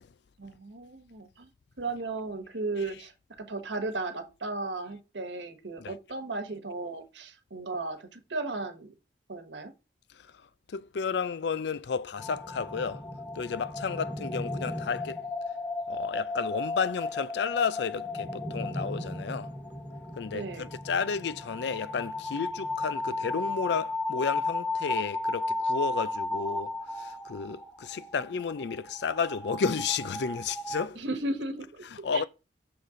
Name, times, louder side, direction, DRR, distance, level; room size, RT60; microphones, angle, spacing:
voice 1, 0.4-1.5 1.8-3.1 3.4-8.9 9.3-9.7 20.3-20.7 31.0-31.8 32.1-32.3, right 2 dB, 90° right, 1.3 m, -35 dB
voice 2, 10.7-13.0 13.3-15.2 15.9-19.5 20.2-31.0 32.0-32.2, left 5 dB, 70° left, 0.4 m, -32 dB
sound 1, 12.2-30.9, left 2 dB, 10° left, 0.8 m, -34 dB
6.5 x 4.1 x 3.8 m
head